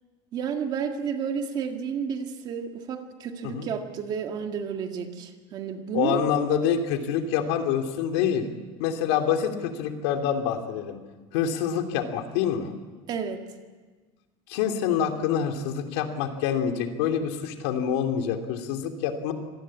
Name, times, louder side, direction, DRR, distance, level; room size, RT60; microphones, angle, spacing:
voice 1, 0.3-6.2 13.1-13.4, right 7 dB, 30° right, 5 dB, 1.9 m, -31 dB
voice 2, 5.9-8.5 8.8-11.0 11.3-12.7 14.5-19.3, left 8 dB, 75° left, 5 dB, 3.0 m, -26 dB
25.5 x 19.0 x 8.6 m, 1.4 s
cardioid pair, 180°, 13 cm